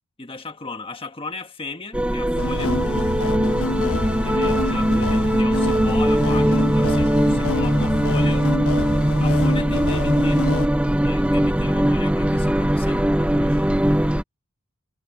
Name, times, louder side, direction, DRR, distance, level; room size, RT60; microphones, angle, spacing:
voice 1, 0.2-2.8 4.2-8.5 9.2-10.5 11.0-13.7, left 3 dB, 25° left, 1.6 m, -36 dB
sound 1, 1.9-14.2, equal, 5° right, 0.6 m, -20 dB
sound 2, 2.4-10.7, left 2 dB, 80° left, 1.1 m, -28 dB
head